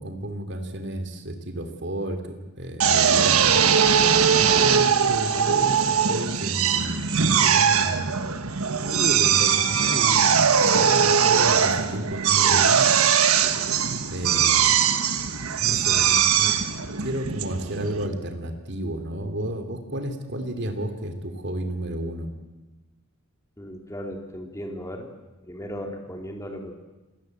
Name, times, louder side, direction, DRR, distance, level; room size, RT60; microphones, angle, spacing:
voice 1, 0.0-3.6 4.3-8.1 8.8-10.5 10.7-13.0 14.1-14.8 15.3-16.6 17.0-22.3, right 1 dB, 55° right, 7 dB, 2.9 m, -32 dB
Drill, 2.8-18.1, right 7 dB, 80° right, 1.4 m, -20 dB
voice 2, 23.6-25.1 25.4-26.7, equal, 15° left, 3 dB, 3.0 m, -36 dB
27.0 x 18.5 x 7.9 m, 1.1 s
head